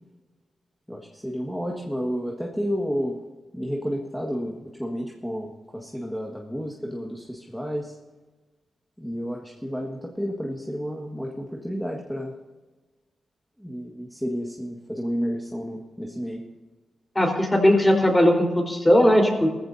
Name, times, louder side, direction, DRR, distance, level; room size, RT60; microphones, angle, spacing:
voice 1, 0.9-3.2 3.5-7.9 9.0-12.3 13.6-16.4, equal, ahead, -1 dB, 1.7 m, -31 dB
voice 2, 17.1-19.5, equal, 15° left, 1 dB, 4.4 m, -18 dB
19.5 x 15.0 x 2.8 m, 1.3 s
cardioid pair, 80°, 0 cm